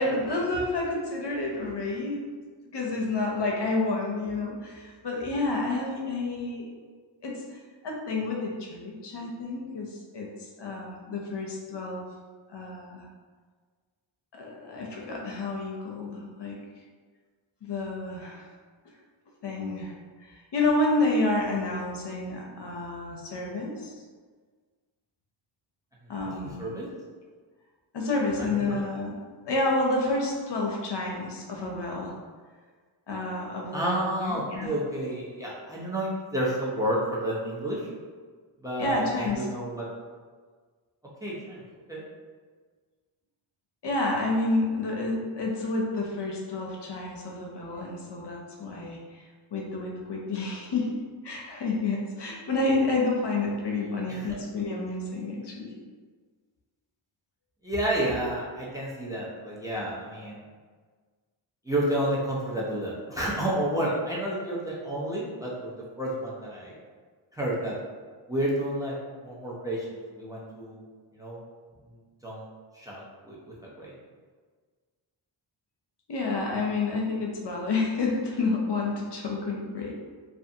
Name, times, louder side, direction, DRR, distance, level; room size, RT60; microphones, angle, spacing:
voice 1, 0.0-2.2 2.7-6.7 7.2-7.4 7.8-12.0 12.5-13.1 14.3-16.6 17.6-18.5 19.4-19.9 20.2-23.9 26.1-26.6 27.9-29.1 29.4-32.1 33.1-34.7 38.8-39.5 43.8-49.2 49.5-55.7 76.1-80.0, left 2 dB, 60° left, -1 dB, 0.6 m, -29 dB
voice 2, 26.2-26.9 28.5-28.7 33.7-37.9 38.6-39.9 41.2-41.6 41.9-42.0 54.0-54.4 57.6-60.4 61.6-66.8 67.3-67.7 68.3-69.0 69.2-70.8 71.1-71.4 72.2-72.4 72.7-73.9, right 1 dB, 5° right, -6 dB, 0.6 m, -30 dB
2.6 x 2.4 x 2.6 m, 1.5 s
wide cardioid pair, 70°, 48 cm